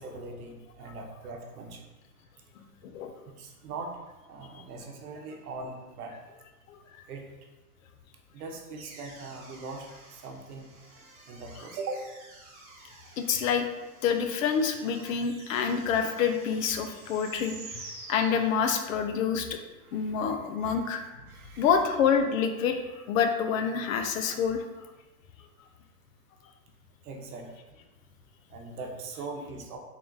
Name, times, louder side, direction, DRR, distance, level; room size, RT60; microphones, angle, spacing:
voice 1, 0.0-1.8 3.4-3.9 4.3-6.2 7.1-7.2 8.3-10.7 11.0-12.1 19.8-20.8 21.1-21.7 27.0-27.5 28.5-29.8, right 3 dB, 70° right, 2 dB, 0.9 m, -41 dB
voice 2, 6.7-7.0 13.2-13.7 14.0-19.6 19.9-21.0 21.6-24.7, left 6 dB, 60° left, 7 dB, 0.6 m, -27 dB
sound 1, 8.8-19.1, right 3 dB, 40° right, 1.2 m, -49 dB
3.7 x 2.4 x 3.8 m, 1.1 s
hypercardioid pair, 140°, 46 cm